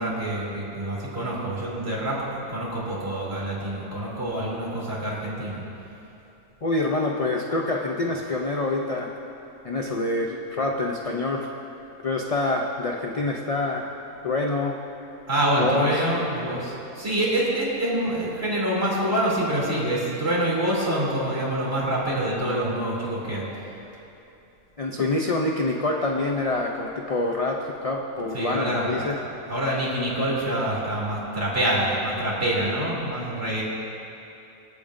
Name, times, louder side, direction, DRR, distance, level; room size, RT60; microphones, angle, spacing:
voice 1, 0.0-5.6 15.3-23.4 28.3-29.0 29.5-33.6, right 1 dB, 45° right, -6 dB, 3.3 m, -26 dB
voice 2, 6.6-9.1 9.6-11.5 12.0-13.9 14.2-14.8 15.6-16.0 24.8-29.2, left 2 dB, 60° left, 0 dB, 0.3 m, -26 dB
25.5 x 8.8 x 2.6 m, 2.8 s
omnidirectional pair, 1.5 m